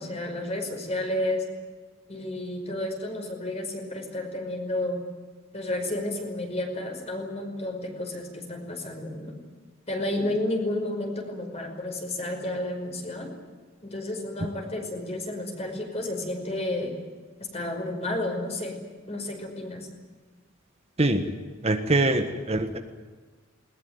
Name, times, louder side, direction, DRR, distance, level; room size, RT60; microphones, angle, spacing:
voice 1, 0.0-1.4 2.1-5.0 5.5-9.4 9.9-13.3 13.8-17.0 17.4-18.8 19.1-19.9, left 1 dB, 30° left, 4 dB, 5.3 m, -31 dB
voice 2, 21.6-22.8, right 2 dB, 30° right, 6 dB, 1.4 m, -23 dB
20.5 x 20.5 x 9.5 m, 1.4 s
head